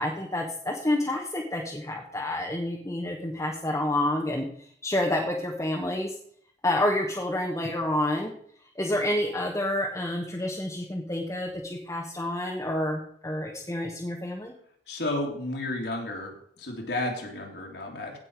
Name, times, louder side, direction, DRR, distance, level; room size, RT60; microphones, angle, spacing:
voice 1, 0.0-4.5 4.8-6.1 6.6-8.3 8.8-14.5, left 1 dB, 15° left, 0 dB, 1.2 m, -29 dB
voice 2, 14.9-18.2, left 1 dB, 70° left, 0 dB, 2.7 m, -32 dB
16.5 x 5.8 x 4.6 m, 0.63 s
head